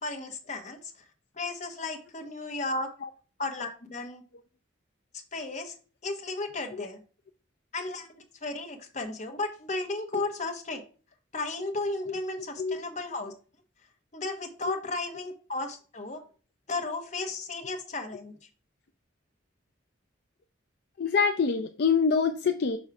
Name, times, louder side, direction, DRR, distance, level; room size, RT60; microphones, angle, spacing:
voice 1, 0.0-0.9 1.4-2.9 3.4-4.2 5.3-5.7 6.0-7.0 7.7-10.8 11.3-13.3 14.1-16.2 16.7-18.3, left 2 dB, 40° left, 4 dB, 1.0 m, -34 dB
voice 2, 21.0-22.8, left 5 dB, 55° left, 6 dB, 0.4 m, -26 dB
6.1 x 3.2 x 5.8 m, 0.38 s
head